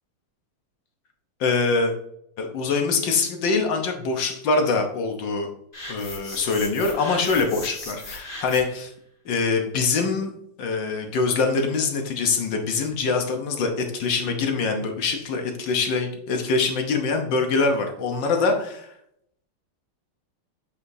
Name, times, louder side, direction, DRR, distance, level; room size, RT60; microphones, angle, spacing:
voice 1, 1.4-1.9 2.4-5.5 5.9-8.9 9.2-10.3 10.6-18.9, left 4 dB, 65° left, 4 dB, 1.5 m, -24 dB
sound 1, 5.7-8.8, left 1 dB, 25° left, 1.7 m, -38 dB
8.4 x 5.0 x 2.7 m, 0.73 s
omnidirectional pair, 2.4 m